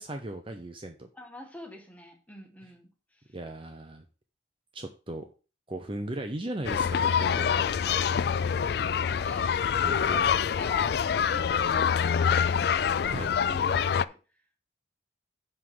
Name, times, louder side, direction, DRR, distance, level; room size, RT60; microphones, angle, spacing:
voice 1, 0.0-1.1 3.3-4.0 4.7-5.3 5.7-7.7 9.8-10.3 13.1-13.3, right 1 dB, 30° right, 5 dB, 0.8 m, -37 dB
voice 2, 1.1-3.4 7.7-8.3 9.2-14.2, left 1 dB, 10° left, 2 dB, 1.9 m, -46 dB
sound 1, 6.6-14.0, left 7 dB, 60° left, 0.3 m, -26 dB
9.8 x 3.7 x 6.1 m, 0.34 s
head